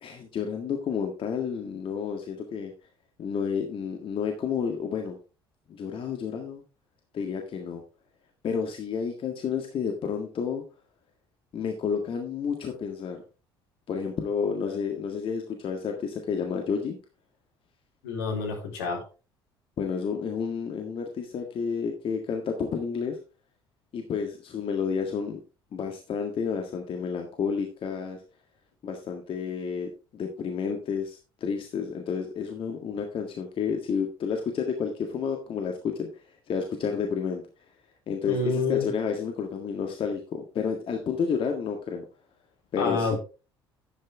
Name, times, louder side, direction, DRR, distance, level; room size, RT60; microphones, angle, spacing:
voice 1, 0.0-2.7 3.2-5.2 5.7-6.6 7.1-7.8 8.4-10.6 11.5-13.2 13.9-17.0 19.8-23.2 23.9-25.4 25.7-28.2 28.8-37.4 38.1-42.0 42.7-43.2, left 6 dB, 45° left, 3 dB, 1.8 m, -30 dB
voice 2, 18.0-19.0 38.2-38.9 42.8-43.2, left 4 dB, 70° left, 0 dB, 3.9 m, -27 dB
11.5 x 8.6 x 3.5 m, 0.32 s
figure-of-eight pair, 60°, 13 cm